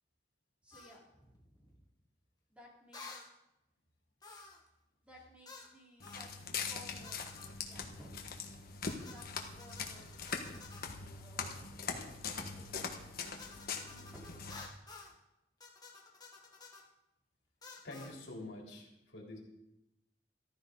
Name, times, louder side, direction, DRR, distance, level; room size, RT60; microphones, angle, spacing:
voice 1, 0.6-1.8 2.5-3.3 5.0-8.4 9.1-10.3 11.1-11.6 12.3-13.4 13.8-14.7, equal, 5° right, -4 dB, 3.8 m, -58 dB
sound 1, 0.7-1.0 2.9-3.3 4.2-4.7 5.5-5.7 6.0-6.3 7.0-7.5 8.9-11.0 13.2-15.2 15.6-16.9 17.6-18.2, left 4 dB, 20° left, 1.7 m, -52 dB
Walk footsteps, 6.0-14.7, left 5 dB, 55° left, 1.5 m, -42 dB
voice 2, 17.8-19.4, left 2 dB, 80° left, -2 dB, 3.7 m, -47 dB
14.5 x 14.0 x 4.0 m, 0.88 s
head